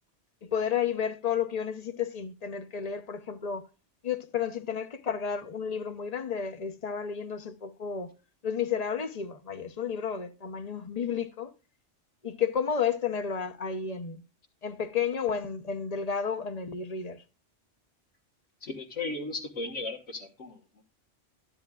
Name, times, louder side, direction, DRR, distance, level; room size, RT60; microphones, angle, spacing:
voice 1, 0.5-3.7 4.0-8.1 8.4-11.5 12.2-14.2 14.6-17.2, left 7 dB, 35° left, 0.8 m, -32 dB
voice 2, 18.6-20.8, left 3 dB, 80° left, 1.7 m, -36 dB
14.0 x 10.0 x 2.3 m
omnidirectional pair, 1.2 m